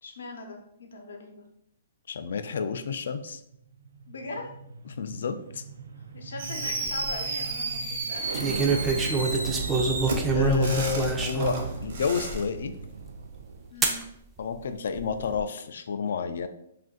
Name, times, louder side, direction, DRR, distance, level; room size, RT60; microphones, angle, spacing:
voice 1, 0.0-1.4 4.1-4.5 6.0-9.3 13.7-14.0, left 2 dB, 85° left, 2 dB, 0.7 m, -41 dB
voice 2, 2.1-3.4 4.9-5.6 10.3-12.7 14.4-16.5, left 6 dB, 70° left, 10 dB, 0.3 m, -30 dB
sound 1, 3.5-13.7, right 4 dB, 85° right, 0.3 m, -37 dB
Fireworks, 6.4-12.4, right 3 dB, 60° right, 0.8 m, -33 dB
sound 2, 6.7-7.1 8.3-11.7 12.3-12.4 13.8-14.0 14.9-15.4, right 4 dB, 10° right, 0.4 m, -26 dB
2.5 x 2.5 x 3.7 m, 0.76 s
hypercardioid pair, 155°, 0 cm